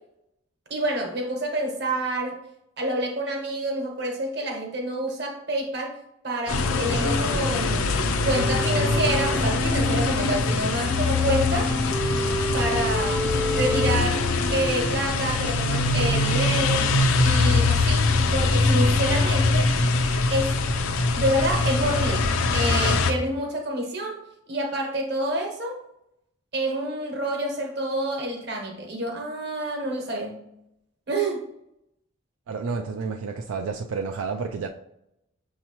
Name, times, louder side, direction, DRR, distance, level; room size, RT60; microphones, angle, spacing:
voice 1, 0.7-2.4 2.8-6.0 6.2-11.7 12.5-16.8 17.2-19.7 20.3-20.6 21.1-24.2 24.5-25.8 26.5-30.4 31.1-31.4, right 1 dB, 50° right, 1 dB, 1.1 m, -28 dB
sound 1, 6.5-23.1, left 3 dB, 85° left, 0.5 m, -23 dB
sound 2, 6.5-10.4 10.9-15.0, equal, 5° left, 0.4 m, -31 dB
voice 2, 32.5-34.7, right 4 dB, 85° right, 4 dB, 0.3 m, -30 dB
6.3 x 2.9 x 2.9 m, 0.80 s
head